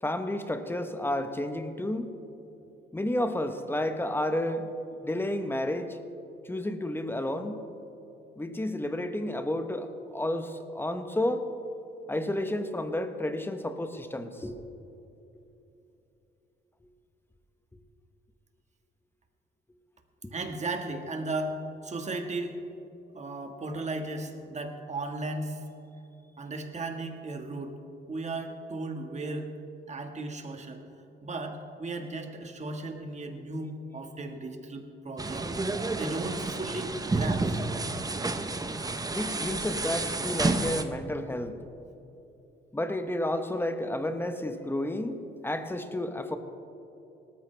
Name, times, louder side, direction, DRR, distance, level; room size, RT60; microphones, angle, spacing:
voice 1, 0.0-2.1 2.9-4.7 5.0-6.0 6.4-7.6 8.4-11.5 12.1-14.6 20.2-20.3 39.1-41.6 42.7-46.4, left 1 dB, 10° left, 8 dB, 1.0 m, -31 dB
voice 2, 20.3-22.6 23.1-25.6 26.4-27.8 28.1-29.5 29.9-30.8 31.2-35.6 35.9-37.6, right 2 dB, 35° right, 4 dB, 1.7 m, -35 dB
sound 1, 35.2-40.8, right 3 dB, 20° right, 0.9 m, -30 dB
18.5 x 14.0 x 3.4 m, 2.9 s
cardioid pair, 90°, 20 cm